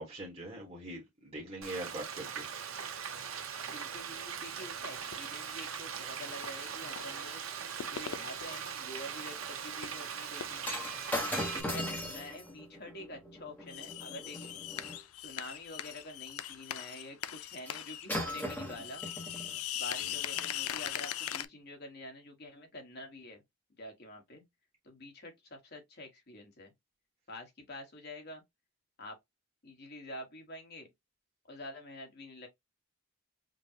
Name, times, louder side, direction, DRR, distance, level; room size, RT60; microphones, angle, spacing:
voice 1, 0.0-2.4 11.2-11.6 20.0-20.1, right 1 dB, 30° right, 1.2 m, -43 dB
Frying (food), 1.6-11.6, right 7 dB, 75° right, 0.8 m, -40 dB
sound 1, 3.3-3.4 3.9-4.0 5.1-5.7 6.4-7.3 7.6-8.8 9.2-9.3 9.5-10.1 10.4-10.8 12.5-12.6 13.6-18.1 18.4-18.5 18.7-21.4, left 11 dB, 90° left, 0.4 m, -40 dB
voice 2, 3.7-7.4 7.9-10.6 11.4-14.6 15.2-19.0 19.7-23.4 23.8-24.4 24.8-26.7 27.3-28.4 29.0-29.2 29.6-30.9 31.5-32.5, left 1 dB, 50° left, 1.3 m, -47 dB
Shatter, 10.6-15.0 17.7-17.8 18.1-19.6 20.3-20.5, left 1 dB, 10° left, 0.9 m, -38 dB
5.2 x 2.2 x 2.7 m
head